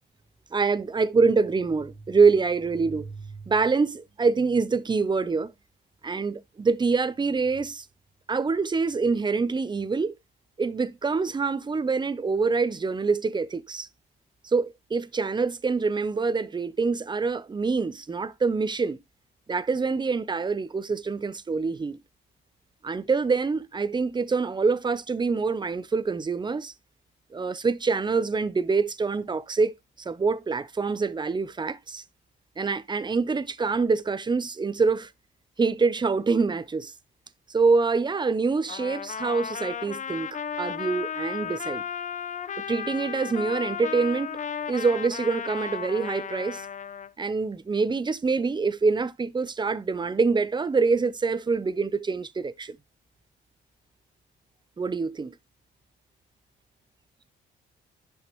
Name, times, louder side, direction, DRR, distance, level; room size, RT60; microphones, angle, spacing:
voice 1, 0.5-5.5 6.0-7.9 8.3-10.2 10.6-13.9 14.4-19.0 19.5-22.0 22.8-26.7 27.3-32.0 32.6-35.1 35.6-36.9 37.5-41.8 42.7-44.4 44.7-46.7 47.2-52.8 54.8-55.3, right 4 dB, 20° right, 0.7 m, -25 dB
Trumpet, 38.7-47.1, left 8 dB, 40° left, 0.6 m, -34 dB
10.5 x 5.6 x 3.1 m
cardioid pair, 90°, 20 cm